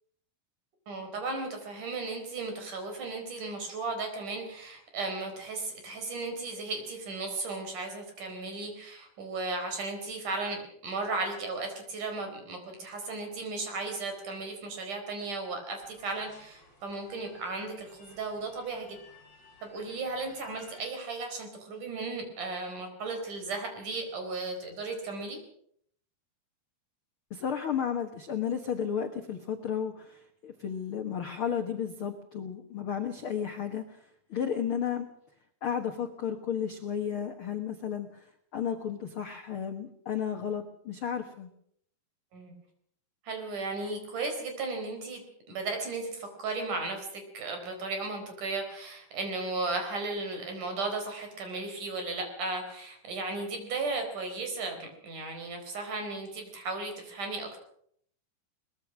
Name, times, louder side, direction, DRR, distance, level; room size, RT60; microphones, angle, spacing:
voice 1, 0.9-19.0 19.6-25.4 42.3-42.5 43.2-45.2 45.5-57.6, right 3 dB, 50° right, 4 dB, 5.8 m, -35 dB
sound 1, 15.8-20.9, left 2 dB, 40° left, 9.0 m, -57 dB
voice 2, 27.3-35.1 35.6-41.5, left 8 dB, 65° left, 6 dB, 1.3 m, -33 dB
22.0 x 20.5 x 6.2 m, 0.67 s
omnidirectional pair, 4.6 m